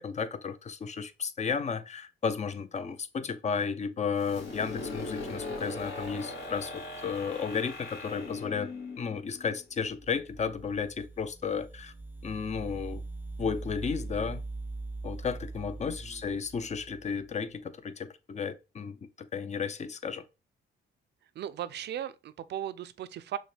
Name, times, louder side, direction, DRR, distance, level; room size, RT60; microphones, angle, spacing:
voice 1, 0.0-8.7 9.0-11.9 12.2-13.0 13.4-14.4 15.0-19.0 19.3-20.2, left 6 dB, 35° left, 0.6 m, -33 dB
sound 1, 4.2-9.9, left 3 dB, 60° left, 1.6 m, -40 dB
sound 2, 9.8-17.3, right 3 dB, 10° right, 0.5 m, -42 dB
voice 2, 15.9-16.2 21.4-23.4, right 11 dB, 60° right, 0.4 m, -37 dB
6.1 x 2.2 x 3.3 m
cardioid pair, 90°, 20 cm